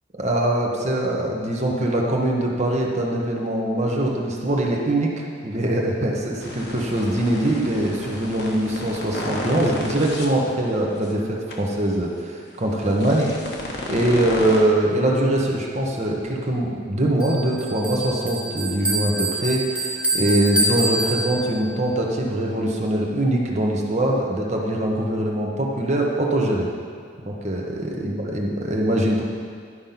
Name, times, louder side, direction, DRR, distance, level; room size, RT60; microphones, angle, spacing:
voice 1, 0.2-5.1 5.4-13.5 13.9-26.7 27.3-29.2, right 1 dB, 40° right, -1 dB, 1.1 m, -23 dB
sound 1, 6.4-10.3 10.9-11.1 11.5-11.6 12.8-14.6, left 1 dB, 60° left, 1.3 m, -32 dB
Bell, 17.2-21.7, right 1 dB, 5° right, 1.2 m, -26 dB
11.0 x 5.3 x 5.8 m, 2.2 s
head